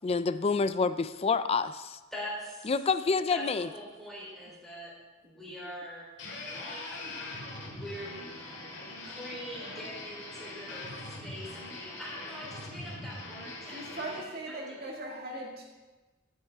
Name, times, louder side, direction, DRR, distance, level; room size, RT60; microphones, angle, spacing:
voice 1, 0.0-2.0 2.6-3.7, left 4 dB, 30° left, 13 dB, 0.4 m, -28 dB
voice 2, 2.1-2.7 3.3-4.9 5.2-6.1 6.6-7.0 7.6-8.1 9.0-14.9, equal, ahead, -6 dB, 3.6 m, -43 dB
sound 1, 6.2-14.2, left 2 dB, 60° left, 2.1 m, -42 dB
voice 3, 13.6-15.6, right 2 dB, 50° right, -1 dB, 2.1 m, -39 dB
13.0 x 8.6 x 3.5 m, 1.2 s
head